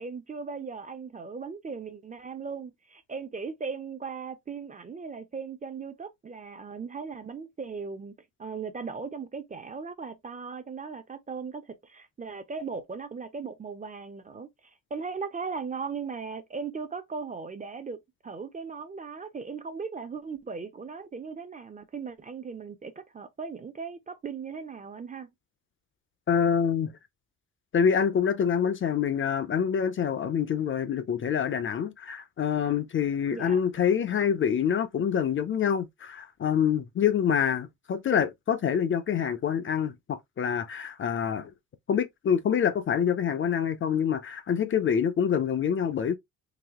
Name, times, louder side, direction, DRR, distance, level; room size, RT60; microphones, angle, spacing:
voice 1, 0.0-8.1 8.4-14.5 14.9-25.3 33.3-33.6, right 5 dB, 20° right, 0.5 m, -38 dB
voice 2, 26.3-26.9 27.7-41.5 41.9-46.2, left 8 dB, 35° left, 0.5 m, -26 dB
4.0 x 2.8 x 2.8 m
cardioid pair, 130°, 36 cm